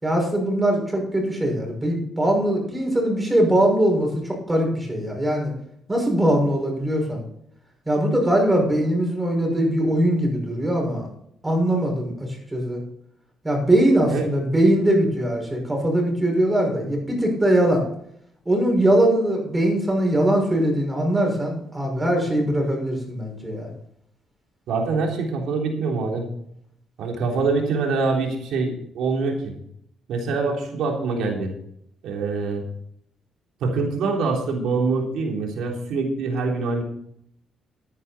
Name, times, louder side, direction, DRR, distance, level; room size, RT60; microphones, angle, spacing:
voice 1, 0.0-5.5 5.9-7.2 7.9-11.1 11.4-12.8 13.4-17.9 18.5-23.7, right 1 dB, 15° right, 1 dB, 6.1 m, -21 dB
voice 2, 24.7-26.3 27.0-29.5 30.1-31.5 32.0-32.6 33.6-36.8, right 4 dB, 80° right, 1 dB, 3.4 m, -24 dB
14.0 x 9.9 x 4.3 m, 0.71 s
cardioid pair, 90°, 0 cm